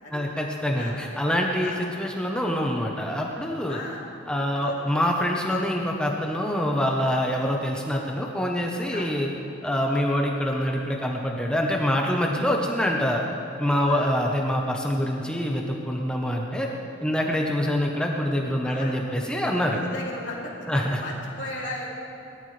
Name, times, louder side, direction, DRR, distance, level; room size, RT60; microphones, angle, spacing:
voice 1, 0.1-3.8 4.3-9.3 9.6-13.2 13.6-16.7 17.0-19.8 20.7-21.0, equal, 5° left, 0 dB, 0.9 m, -25 dB
voice 2, 3.7-4.0 4.5-4.7 8.9-9.1 13.7-14.1 18.6-19.0 19.7-21.9, left 2 dB, 55° left, -4 dB, 3.0 m, -36 dB
21.0 x 13.0 x 3.3 m, 3.0 s
head